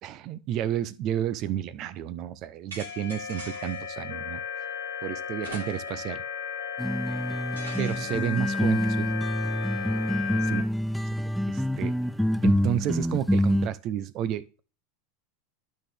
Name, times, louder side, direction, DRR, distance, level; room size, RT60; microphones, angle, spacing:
voice 1, 0.0-4.4 5.0-6.2 7.8-9.1 10.4-10.6 11.5-12.0 12.4-14.6, right 11 dB, 45° right, 0.7 m, -31 dB
sound 1, 2.7-3.9 5.4-6.1 6.5-6.6 7.6-8.4, right 3 dB, 85° right, 2.4 m, -44 dB
sound 2, 2.8-10.6, left 7 dB, 75° left, 1.3 m, -35 dB
sound 3, 6.8-13.7, equal, ahead, 0.4 m, -26 dB
12.0 x 4.2 x 3.4 m
hypercardioid pair, 90°, 0 cm